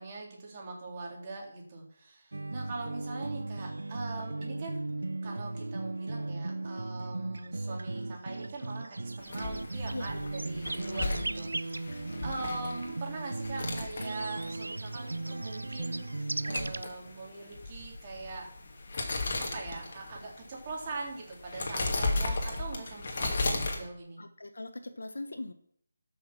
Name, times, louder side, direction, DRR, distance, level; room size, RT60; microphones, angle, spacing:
voice 1, 0.0-4.8 5.2-16.2 16.4-18.5 19.4-24.2, right 3 dB, 25° right, -1 dB, 3.4 m, -42 dB
sound 1, 2.3-16.8, right 2 dB, 85° right, 0.4 m, -36 dB
sound 2, 9.2-23.8, left 2 dB, 45° left, 2.4 m, -36 dB
voice 2, 24.2-25.5, left 2 dB, 85° left, 8 dB, 1.4 m, -41 dB
13.0 x 6.5 x 6.0 m, 0.66 s
figure-of-eight pair, 170°, 0 cm